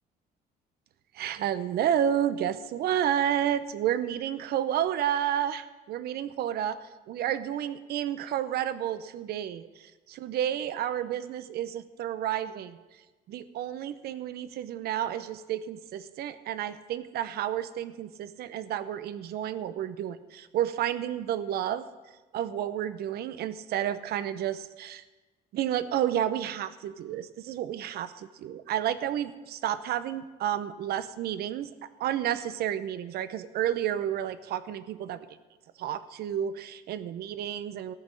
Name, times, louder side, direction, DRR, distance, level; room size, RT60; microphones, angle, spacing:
voice 1, 1.1-6.8 7.1-12.8 13.3-21.9 22.3-25.0 25.5-31.7 32.0-35.2 35.8-37.9, right 10 dB, 70° right, 14 dB, 0.8 m, -31 dB
14.0 x 6.1 x 8.9 m, 1.2 s
cardioid pair, 110°, 17 cm